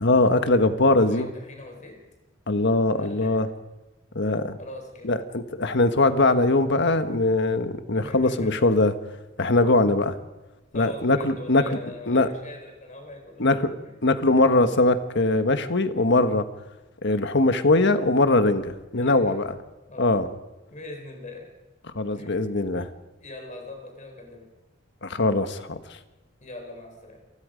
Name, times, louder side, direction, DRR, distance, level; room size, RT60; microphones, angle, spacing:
voice 1, 0.0-1.3 2.5-3.5 4.1-4.6 5.0-8.9 9.4-10.1 10.7-11.6 12.1-12.3 13.4-13.7 14.0-16.5 17.0-19.5 20.0-20.3 21.9-22.9 25.0-25.8, left 2 dB, 60° left, 9 dB, 1.5 m, -21 dB
voice 2, 0.8-2.0 2.9-3.4 4.6-5.2 7.9-8.7 10.7-13.6 13.8-13.9 14.5-14.6 18.9-19.4 19.9-20.2 20.7-21.5 22.2-22.4 23.2-24.5 26.4-27.2, left 2 dB, 40° left, 3 dB, 4.4 m, -41 dB
28.0 x 19.5 x 5.2 m, 1.1 s
head